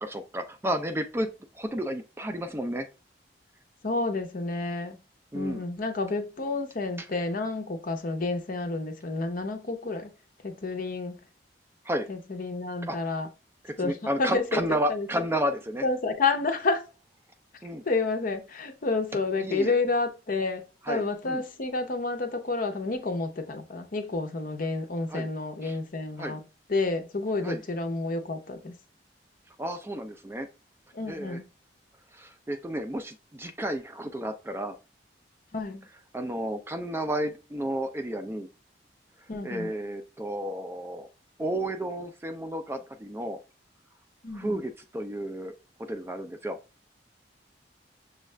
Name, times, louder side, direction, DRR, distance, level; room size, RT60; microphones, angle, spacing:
voice 1, 0.0-2.9 5.3-5.6 11.8-12.1 12.9-13.0 13.6-15.8 17.6-17.8 19.4-19.7 20.8-21.4 25.1-25.3 25.6-25.8 26.2-26.4 27.4-27.6 29.6-30.5 31.1-31.4 32.1-34.8 36.1-38.5 39.4-41.1 41.4-43.4 44.3-45.5 45.9-46.6, right 1 dB, 15° right, 0.4 m, -32 dB
voice 2, 3.8-5.0 5.3-10.1 10.4-11.1 12.1-13.3 13.8-13.9 14.2-15.2 15.8-16.8 17.8-26.4 26.7-28.7 30.9-31.5 35.5-35.8 39.3-39.7 44.2-44.6, left 3 dB, 50° left, 0.7 m, -30 dB
6.3 x 2.4 x 3.2 m
head